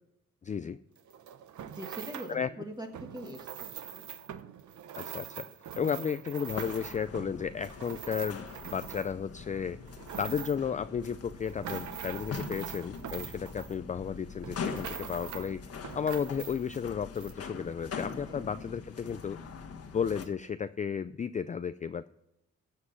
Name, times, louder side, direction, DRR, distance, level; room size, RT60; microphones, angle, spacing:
voice 1, 0.4-0.8 2.3-2.5 5.0-5.5 5.8-8.5 8.7-9.8 10.2-15.7 15.9-19.4 19.9-22.1, left 7 dB, 25° left, 12 dB, 0.4 m, -33 dB
sound 1, 1.0-2.4 2.9-9.3 9.7-10.7 11.2-14.1 14.4-15.5 15.8-16.8 17.2-17.3, right 10 dB, 80° right, 0.9 m, -43 dB
voice 2, 1.7-4.1 18.3-18.5, right 1 dB, 15° right, 3 dB, 1.6 m, -43 dB
sound 2, 6.5-20.3, left 5 dB, 55° left, 1.5 m, -43 dB
16.5 x 7.6 x 5.8 m, 0.85 s
cardioid pair, 120°, 29 cm